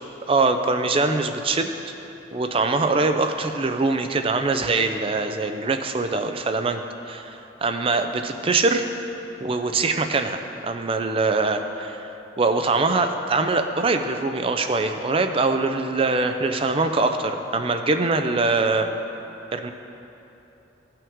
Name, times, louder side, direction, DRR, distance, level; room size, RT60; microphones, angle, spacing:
voice 1, 0.3-1.7 2.3-8.8 9.4-18.9 19.5-19.7, right 3 dB, 30° right, 7 dB, 0.4 m, -23 dB
15.5 x 5.7 x 3.6 m, 3.0 s
head